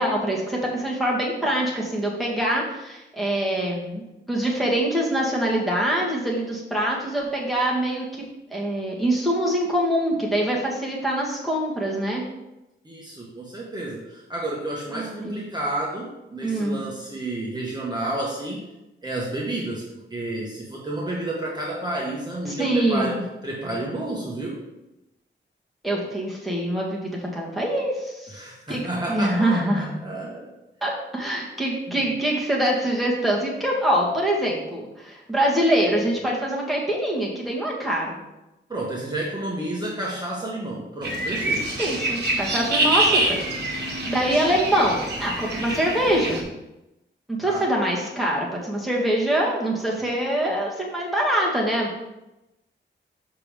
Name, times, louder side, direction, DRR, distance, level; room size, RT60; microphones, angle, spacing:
voice 1, 0.0-8.2 8.5-12.2 14.9-15.4 16.4-16.8 22.4-23.2 25.8-28.4 28.7-28.8 29.1-29.9 30.8-38.2 41.8-43.4 43.7-46.4 47.3-52.0, right 1 dB, ahead, -4 dB, 1.4 m, -24 dB
voice 2, 12.8-18.6 19.0-24.6 28.3-30.5 31.9-32.0 38.7-41.7 47.4-47.7, right 1 dB, 20° right, -4 dB, 1.1 m, -31 dB
sound 1, 41.0-46.4, right 1 dB, 55° right, 1.6 m, -25 dB
6.9 x 5.9 x 3.4 m, 0.95 s
wide cardioid pair, 160°, 20 cm